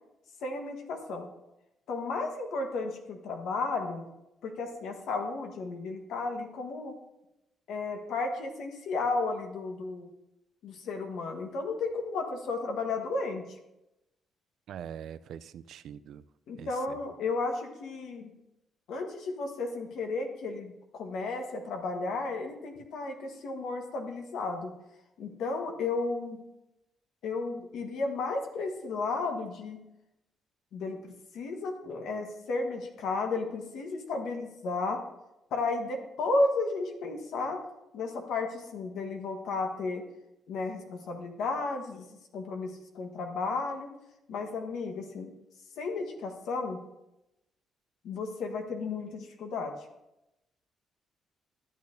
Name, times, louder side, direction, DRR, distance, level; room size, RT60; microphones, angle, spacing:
voice 1, 0.4-1.3 1.9-4.0 4.4-7.0 7.7-10.1 10.6-13.4 16.5-18.3 18.9-24.7 25.2-26.4 27.2-29.8 30.7-35.0 35.5-37.6 37.9-40.0 40.5-42.0 42.3-43.9 44.3-45.3 45.8-46.8 48.0-49.7, left 3 dB, 80° left, 4 dB, 1.3 m, -33 dB
voice 2, 14.7-16.2 16.6-17.0, right 9 dB, 75° right, 15 dB, 0.3 m, -43 dB
12.5 x 8.6 x 2.7 m, 0.92 s
cardioid pair, 90°, 0 cm